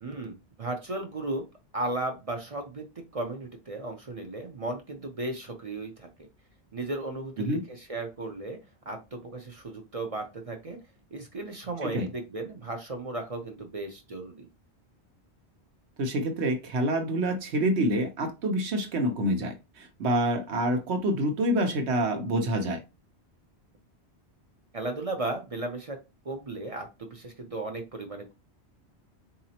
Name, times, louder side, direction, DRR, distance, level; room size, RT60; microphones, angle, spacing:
voice 1, 0.0-1.5 1.7-6.3 6.7-8.6 8.9-10.8 11.1-14.5 24.7-26.0 26.2-28.3, right 2 dB, 40° right, 4 dB, 0.6 m, -35 dB
voice 2, 16.0-22.8, right 1 dB, 80° right, 5 dB, 1.1 m, -27 dB
4.0 x 2.8 x 2.8 m, 0.26 s
omnidirectional pair, 1.1 m